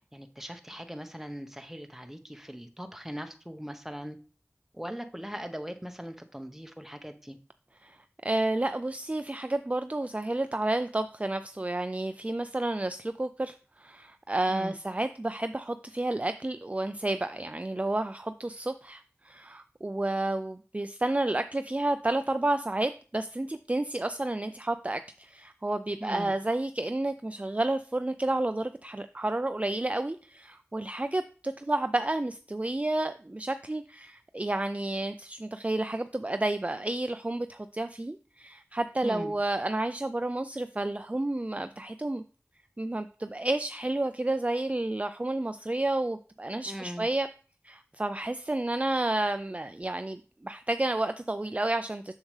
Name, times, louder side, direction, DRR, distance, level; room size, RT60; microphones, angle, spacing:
voice 1, 0.1-4.2 4.7-7.4 14.5-14.8 26.0-26.3 39.0-39.4 46.7-47.1, equal, 5° right, 7 dB, 0.8 m, -40 dB
voice 2, 8.2-42.2 42.8-47.3 47.6-52.1, right 2 dB, 30° right, 10 dB, 0.3 m, -31 dB
7.0 x 6.4 x 3.2 m, 0.38 s
wide cardioid pair, 40°, 5 cm